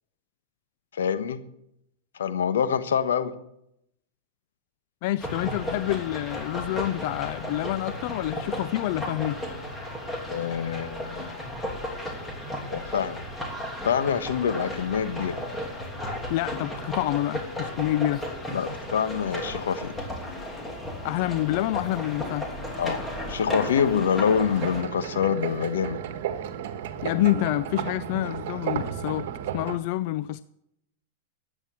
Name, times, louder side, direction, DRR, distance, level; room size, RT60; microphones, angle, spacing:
voice 1, 0.9-1.4 2.1-3.3 10.3-11.4 12.7-13.2 13.8-15.4 18.5-19.9 22.8-23.0 23.3-26.0, left 7 dB, 90° left, 1.3 m, -26 dB
voice 2, 5.0-9.4 16.3-18.2 21.0-22.5 27.0-29.3 29.5-30.4, left 15 dB, 55° left, 0.5 m, -27 dB
sound 1, 5.2-24.8, left 1 dB, 10° left, 3.0 m, -34 dB
sound 2, 24.5-29.8, right 9 dB, 65° right, 1.5 m, -33 dB
12.5 x 8.9 x 7.6 m
hypercardioid pair, 130°, 0 cm